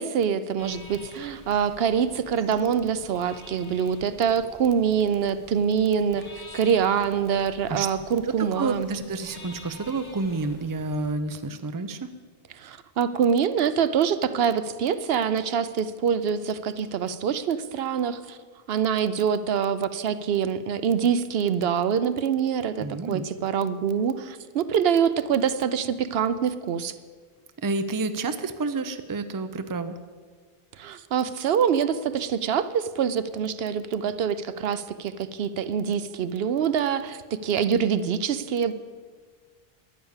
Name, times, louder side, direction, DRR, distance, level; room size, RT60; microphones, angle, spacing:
voice 1, 0.0-8.9 12.6-18.4 18.7-26.9 30.8-38.7, right 7 dB, 75° right, 13 dB, 0.8 m, -25 dB
sound 1, 0.6-11.1, left 1 dB, 30° left, 1.4 m, -48 dB
voice 2, 8.2-12.1 22.8-23.2 27.6-29.9, right 3 dB, 25° right, 10 dB, 0.5 m, -29 dB
10.5 x 9.4 x 7.2 m, 1.5 s
omnidirectional pair, 1.0 m